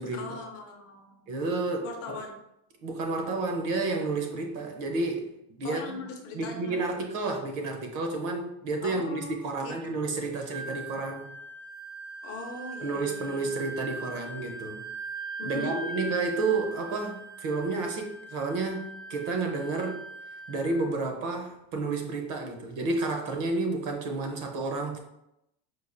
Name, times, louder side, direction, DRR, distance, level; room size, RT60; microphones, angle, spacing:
voice 1, 0.1-1.3 1.8-2.4 4.4-4.5 5.6-6.8 8.8-9.7 12.2-13.5 15.4-15.8, left 3 dB, 35° left, 2 dB, 0.6 m, -40 dB
voice 2, 1.3-2.2 2.8-6.0 6.3-11.3 12.8-14.8 15.4-20.0 20.5-25.0, right 3 dB, 50° right, 3 dB, 0.7 m, -31 dB
Wind instrument woodwind instrument, 10.5-20.9, right 3 dB, 10° right, 0.4 m, -40 dB
4.6 x 2.3 x 2.5 m, 0.84 s
cardioid pair, 160°, 41 cm